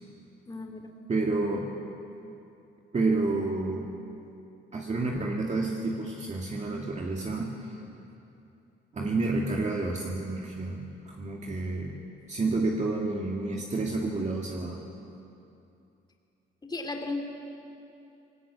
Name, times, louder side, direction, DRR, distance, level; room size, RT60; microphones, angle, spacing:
voice 1, 0.5-0.9 16.6-17.2, left 3 dB, 20° left, 4 dB, 2.7 m, -35 dB
voice 2, 1.1-1.7 2.9-3.9 4.7-7.8 8.9-12.0 12.3-14.8, right 3 dB, 35° right, -1 dB, 2.2 m, -29 dB
20.0 x 18.0 x 8.5 m, 2.7 s
cardioid pair, 90°, 20 cm